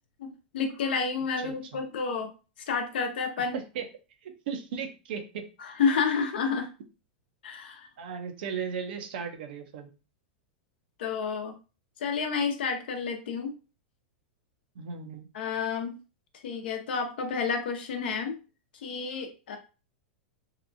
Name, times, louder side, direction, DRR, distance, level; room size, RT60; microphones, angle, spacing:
voice 1, 0.2-2.3 2.7-3.5 5.6-6.7 7.4-7.9 11.0-11.5 12.0-13.5 15.3-16.0 16.4-18.4 18.8-19.6, left 5 dB, 75° left, 5 dB, 0.7 m, -30 dB
voice 2, 1.4-1.8 3.4-3.9 4.2-5.4 8.0-9.9 14.8-15.3, right 6 dB, 70° right, 7 dB, 0.6 m, -36 dB
2.8 x 2.2 x 2.6 m, 0.32 s
hypercardioid pair, 110°, 5 cm